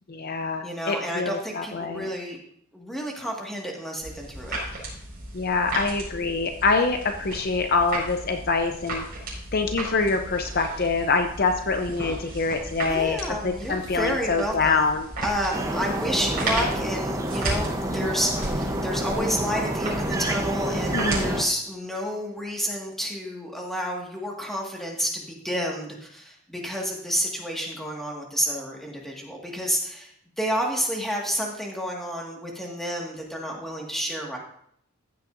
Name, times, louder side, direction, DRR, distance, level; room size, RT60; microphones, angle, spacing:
voice 1, 0.1-2.1 5.3-9.0 9.5-13.2 13.4-15.1 20.9-21.3, left 4 dB, 45° left, 6 dB, 0.6 m, -25 dB
voice 2, 0.6-2.4 2.7-4.6 12.9-14.9 15.2-30.1 30.4-34.4, equal, ahead, -1 dB, 1.7 m, -30 dB
sound 1, 4.0-21.3, right 1 dB, 45° right, 4.9 m, -35 dB
sound 2, 15.5-21.4, right 1 dB, 15° right, 0.8 m, -28 dB
15.0 x 8.7 x 2.6 m, 0.68 s
head